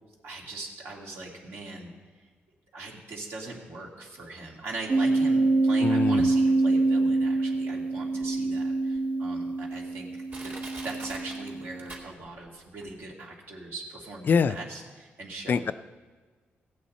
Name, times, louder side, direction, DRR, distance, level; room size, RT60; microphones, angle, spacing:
voice 1, 0.2-1.9 2.7-10.1 10.4-10.5 10.8-15.7, right 2 dB, 70° right, -1 dB, 2.3 m, -40 dB
sound 1, 4.9-11.9, right 3 dB, 40° right, 0.6 m, -26 dB
voice 2, 5.8-6.3 14.3-14.6 15.5-15.7, left 6 dB, 50° left, 13 dB, 0.3 m, -24 dB
Crushing, 8.2-8.3 9.0-9.1 9.7-9.8 10.3-12.5 12.8-12.9, right 2 dB, 55° right, 2.5 m, -43 dB
16.0 x 8.4 x 4.2 m, 1.4 s
cardioid pair, 110°, 4 cm